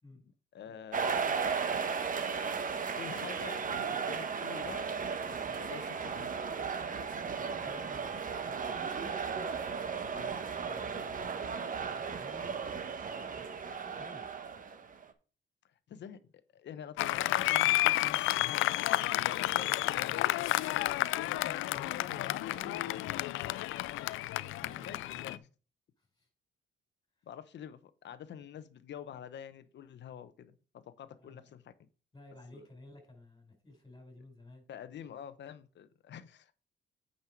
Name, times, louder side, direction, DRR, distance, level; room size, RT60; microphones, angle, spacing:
voice 1, 0.5-1.2 3.0-4.8 5.3-6.3 10.1-10.3 15.9-20.7 24.8-25.5 27.2-31.9 32.5-32.6 34.7-36.5, left 9 dB, 65° left, 0.9 m, -47 dB
sound 1, 0.9-15.1, right 6 dB, 45° right, 1.1 m, -35 dB
voice 2, 7.3-9.1 10.6-11.5 12.0-12.6 13.1-13.5 13.8-14.2 21.3-23.7 24.6-25.3 26.0-26.3 31.2-31.5 32.1-34.6, left 1 dB, 20° left, 4.6 m, -54 dB
Applause, 17.0-25.4, left 16 dB, 85° left, 0.4 m, -31 dB
8.8 x 5.6 x 4.6 m
cardioid pair, 90°, 20 cm